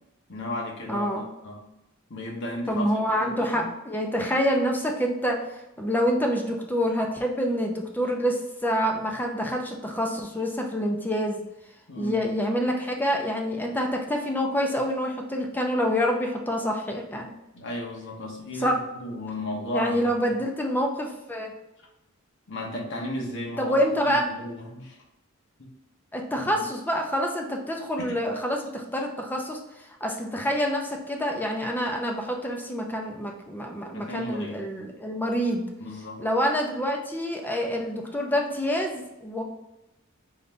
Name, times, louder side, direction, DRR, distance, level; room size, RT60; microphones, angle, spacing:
voice 1, 0.3-1.1 1.4-1.6 2.1-3.7 11.9-12.2 17.5-20.4 22.5-23.7 24.0-24.9 25.6-25.7 26.4-26.7 28.0-28.2 33.9-34.7 35.8-36.2, left 1 dB, 60° left, -1 dB, 1.0 m, -34 dB
voice 2, 0.9-1.3 2.7-5.5 5.8-11.4 12.0-17.3 18.6-18.7 19.7-21.5 23.6-24.3 26.1-35.7 36.2-39.4, equal, 10° left, 1 dB, 0.5 m, -27 dB
3.9 x 2.6 x 3.3 m, 0.95 s
head